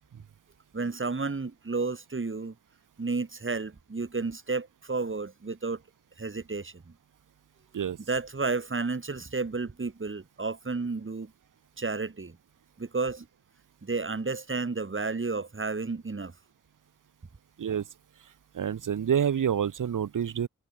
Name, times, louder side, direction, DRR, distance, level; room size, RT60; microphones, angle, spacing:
voice 1, 0.7-2.5 3.0-5.8 6.2-6.9 8.1-11.3 11.8-12.4 12.8-13.3 13.8-16.3, right 3 dB, 40° right, 4.8 m, -32 dB
voice 2, 18.5-20.5, right 8 dB, 90° right, 2.3 m, -27 dB
cardioid pair, 65°, 31 cm